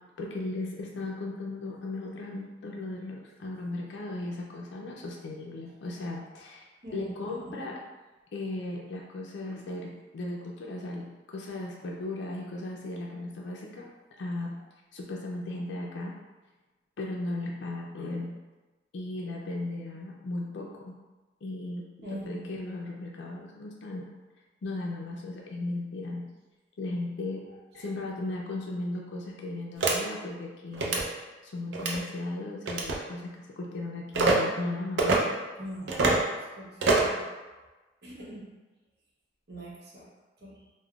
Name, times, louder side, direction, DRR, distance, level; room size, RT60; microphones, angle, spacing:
voice 1, 0.2-7.8 8.3-13.9 14.2-14.6 14.9-16.1 17.0-18.3 18.9-20.9 21.4-24.0 24.6-26.2 26.8-27.4 27.7-31.0 31.4-35.3, left 2 dB, 75° left, -2 dB, 0.4 m, -36 dB
voice 2, 6.8-7.6 22.0-22.5 35.6-37.3 38.0-38.5 39.5-40.1 40.4-40.6, equal, 60° right, -6 dB, 0.8 m, -42 dB
sound 1, 29.8-29.9 30.7-31.0 31.7-32.0 32.7-33.0 34.1-34.4 35.0-35.2 35.9-36.2 36.8-37.2, right 3 dB, 80° right, 0.4 m, -24 dB
3.5 x 2.0 x 2.3 m, 1.2 s
head